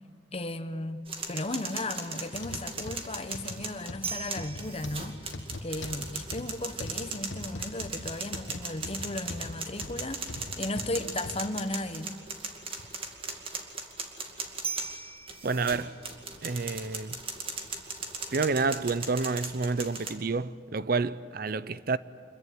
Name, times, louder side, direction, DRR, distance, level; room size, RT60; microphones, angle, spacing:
voice 1, 0.3-1.0 1.3-5.3 5.6-10.3 10.6-12.1, left 2 dB, 35° left, 1.1 m, -35 dB
sound 1, 1.1-20.1, right 4 dB, 30° right, 2.4 m, -38 dB
sound 2, 2.3-11.4 12.0-12.1 12.8-12.9, left 2 dB, 80° left, 1.4 m, -41 dB
voice 2, 15.4-16.0 16.4-17.2 18.3-22.0, right 4 dB, 55° right, 0.6 m, -29 dB
26.5 x 22.5 x 9.4 m
head